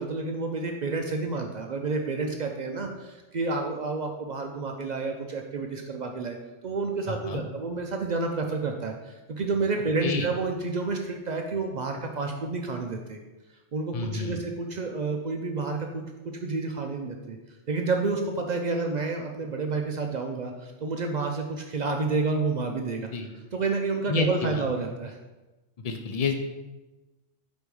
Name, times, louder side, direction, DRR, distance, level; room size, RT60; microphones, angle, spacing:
voice 1, 0.0-6.4 6.6-13.2 13.7-16.0 16.4-17.4 17.7-23.1 23.5-25.2, right 3 dB, 65° right, 3 dB, 0.4 m, -29 dB
voice 2, 7.1-7.4 10.0-10.3 13.9-14.4 23.1-23.3 24.1-24.6 25.8-26.3, left 4 dB, 55° left, 5 dB, 0.4 m, -29 dB
5.3 x 4.1 x 4.7 m, 1.1 s
omnidirectional pair, 1.3 m